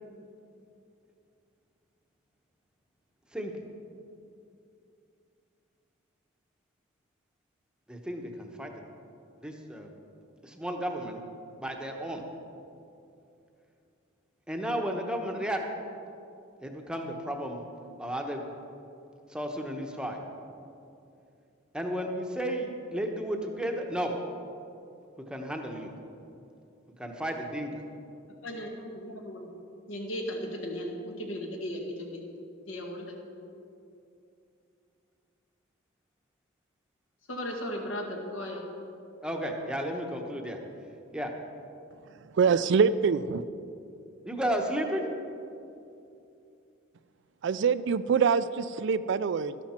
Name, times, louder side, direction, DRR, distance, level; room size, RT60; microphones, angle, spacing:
voice 1, 3.3-3.6 7.9-8.7 9.4-9.9 10.4-11.2 11.6-12.2 14.5-15.6 16.6-17.6 18.0-18.4 19.3-20.2 21.7-24.1 25.3-25.9 27.0-27.8 39.2-40.6 41.1-41.3 44.2-45.1, equal, 5° right, 2 dB, 0.9 m, -33 dB
voice 2, 28.4-29.5 29.9-32.2 32.7-33.2 37.3-38.6, equal, 75° left, 1 dB, 1.9 m, -36 dB
voice 3, 42.4-43.4 47.4-49.6, right 6 dB, 65° right, 14 dB, 0.4 m, -25 dB
12.5 x 11.5 x 4.3 m, 2.6 s
head